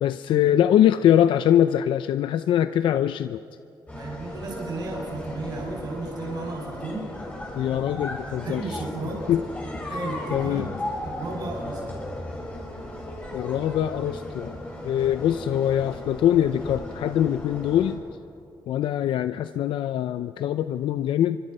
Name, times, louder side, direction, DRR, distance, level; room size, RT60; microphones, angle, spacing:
voice 1, 0.0-3.4 7.6-8.8 9.3-9.4 10.3-10.7 13.3-14.6 14.8-18.0 18.7-21.4, left 11 dB, 90° left, 12 dB, 0.5 m, -23 dB
sound 1, 3.9-18.0, left 1 dB, 15° left, 6.2 m, -36 dB
voice 2, 3.9-7.1 8.3-9.2 9.6-10.7 11.0-11.8, right 2 dB, 55° right, -2 dB, 6.2 m, -34 dB
28.5 x 25.0 x 5.5 m, 2.6 s
cardioid pair, 135°, 8 cm